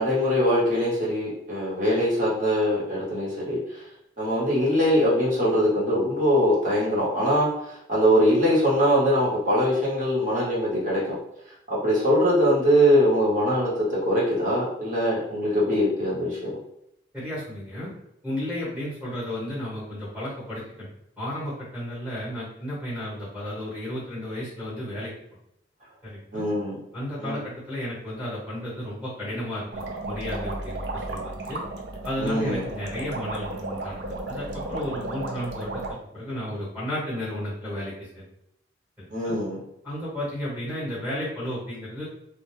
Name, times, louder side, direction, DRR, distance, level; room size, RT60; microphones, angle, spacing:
voice 1, 0.0-3.6 4.2-7.5 7.9-11.2 11.7-16.6 26.3-26.8 27.2-27.4 32.2-32.6 39.1-39.6, equal, 45° right, -7 dB, 1.0 m, -22 dB
voice 2, 17.1-17.9 18.2-20.9 21.2-25.1 26.0-26.4 26.9-29.7 30.0-31.6 32.0-38.2 39.0-39.3 39.8-42.1, left 1 dB, 10° right, -10 dB, 1.1 m, -33 dB
sound 1, 29.7-35.9, right 2 dB, 65° right, 0.4 m, -34 dB
2.2 x 2.2 x 3.1 m, 0.78 s
head